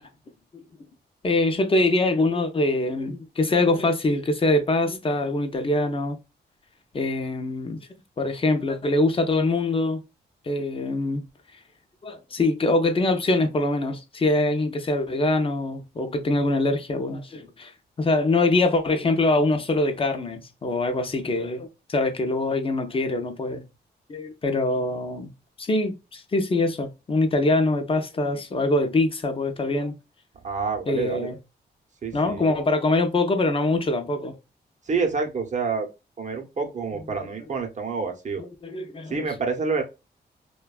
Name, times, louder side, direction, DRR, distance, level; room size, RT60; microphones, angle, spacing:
voice 1, 1.2-6.2 6.9-7.9 8.2-10.0 10.5-11.2 12.0-17.7 18.0-23.6 24.1-25.3 25.6-30.0 30.9-31.4 32.1-34.4 38.4-39.3, left 2 dB, 30° left, 0.6 m, -24 dB
voice 2, 30.4-31.3 32.0-32.6 34.9-35.9 36.2-38.4 39.1-39.8, right 4 dB, 45° right, 0.7 m, -28 dB
2.5 x 2.2 x 2.3 m
cardioid pair, 95°, 18 cm